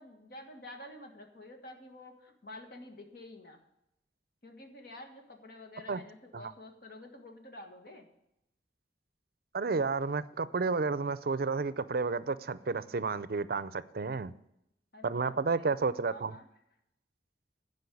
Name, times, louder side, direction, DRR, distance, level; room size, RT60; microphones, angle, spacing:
voice 1, 0.0-3.6 4.4-8.1 14.9-15.8 16.1-16.5, left 1 dB, 60° left, 1.5 m, -49 dB
voice 2, 9.5-14.3 15.0-16.3, right 4 dB, 55° right, 0.5 m, -31 dB
12.0 x 5.3 x 8.3 m
head